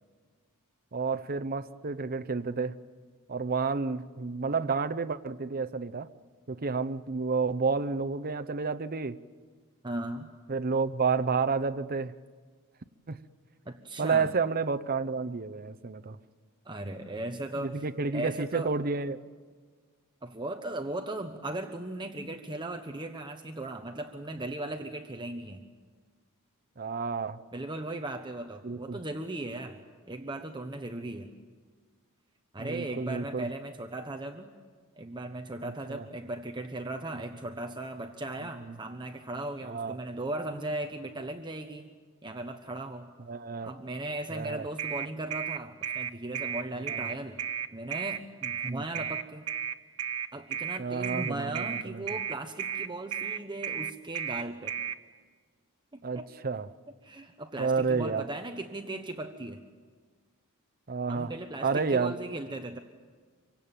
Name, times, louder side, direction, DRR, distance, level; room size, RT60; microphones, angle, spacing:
voice 1, 0.9-2.8 3.3-6.1 6.5-9.2 10.5-12.1 13.1-13.2 14.0-16.2 17.6-19.2 26.8-27.4 28.6-29.0 32.6-33.5 35.6-36.1 38.6-38.8 39.6-40.0 43.3-43.7 44.3-44.7 46.7-47.1 48.7-48.9 50.8-52.0 56.0-56.7 57.6-58.2 60.9-61.3 61.6-62.1, right 4 dB, 40° right, 11 dB, 0.8 m, -30 dB
voice 2, 9.8-10.3 13.6-14.3 16.6-17.9 18.1-18.7 20.2-25.6 27.5-29.8 30.1-31.3 32.5-34.5 35.0-41.9 42.2-43.1 43.6-47.4 47.7-49.4 50.3-54.7 55.9-56.3 57.0-59.6 61.1-62.8, right 2 dB, 20° right, 5 dB, 1.1 m, -37 dB
sound 1, 44.8-55.0, right 8 dB, 75° right, 1.4 m, -33 dB
26.5 x 24.0 x 9.0 m, 1.5 s
head